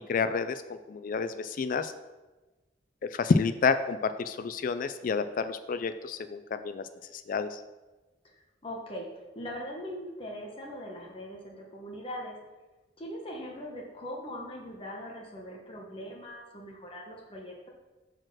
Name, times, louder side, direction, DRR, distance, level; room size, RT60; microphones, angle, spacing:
voice 1, 0.1-1.9 3.1-7.6, left 5 dB, 50° left, 12 dB, 0.3 m, -29 dB
voice 2, 8.6-12.3 13.0-17.7, equal, 30° left, -1 dB, 1.1 m, -41 dB
6.3 x 4.3 x 6.2 m, 1.1 s
head